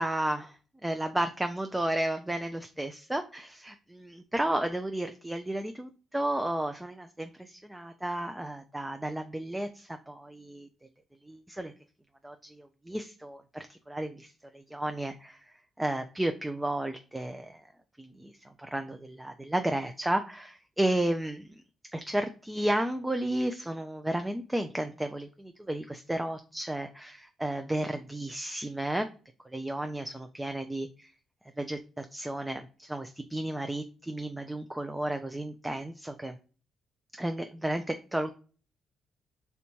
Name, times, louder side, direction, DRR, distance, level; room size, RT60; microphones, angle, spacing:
voice 1, 0.0-10.7 11.2-11.7 12.2-15.4 15.8-17.6 18.0-21.6 21.9-29.1 29.4-31.1 31.6-36.4 37.1-38.3, right 1 dB, 10° right, 7 dB, 0.4 m, -33 dB
3.3 x 2.8 x 4.4 m, 0.37 s
cardioid pair, 90°, 0 cm